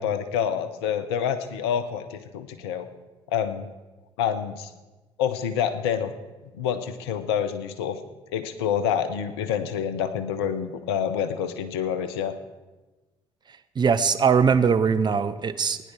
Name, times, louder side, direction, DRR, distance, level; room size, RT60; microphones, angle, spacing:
voice 1, 0.0-2.9 3.3-3.7 4.2-4.7 5.2-6.1 6.6-8.0 8.3-12.3, left 8 dB, 70° left, 10 dB, 0.8 m, -27 dB
voice 2, 13.8-15.8, right 6 dB, 30° right, 12 dB, 0.7 m, -21 dB
16.5 x 10.0 x 4.6 m, 1.2 s
figure-of-eight pair, 45°, 14 cm